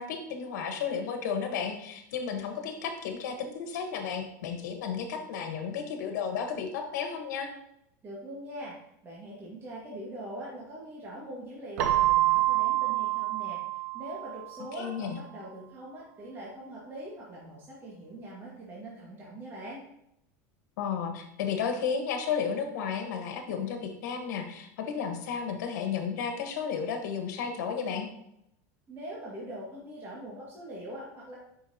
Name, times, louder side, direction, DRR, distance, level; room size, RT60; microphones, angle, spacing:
voice 1, 0.0-7.5 14.8-15.2 20.8-28.1, left 6 dB, 85° left, 5 dB, 1.3 m, -33 dB
voice 2, 8.0-8.7 9.0-13.6 13.9-19.8 28.9-31.4, right 1 dB, 25° right, -5 dB, 1.8 m, -42 dB
Keyboard (musical), 11.8-14.5, right 15 dB, 70° right, 0.7 m, -26 dB
7.1 x 5.7 x 2.8 m, 0.78 s
supercardioid pair, 140°, 9 cm